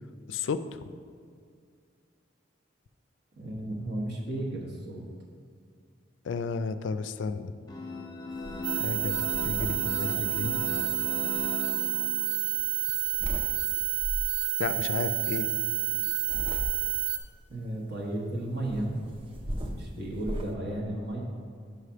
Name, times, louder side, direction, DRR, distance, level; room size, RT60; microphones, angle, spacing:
voice 1, 0.3-0.9 6.2-7.5 8.8-10.6 14.6-15.5, left 5 dB, 70° left, 11 dB, 0.3 m, -33 dB
voice 2, 3.4-5.0 17.5-19.0 19.6-21.2, right 1 dB, 55° right, -2 dB, 1.3 m, -34 dB
sound 1, 7.7-12.4, left 2 dB, 20° left, 0.7 m, -38 dB
sound 2, 8.3-8.6 8.9-11.4 12.6-13.5 14.0-14.4 16.0-17.1 18.7-20.5, equal, 25° right, 0.5 m, -38 dB
sound 3, 8.6-17.2, right 7 dB, 75° right, 0.7 m, -29 dB
5.7 x 4.9 x 5.7 m, 2.1 s
head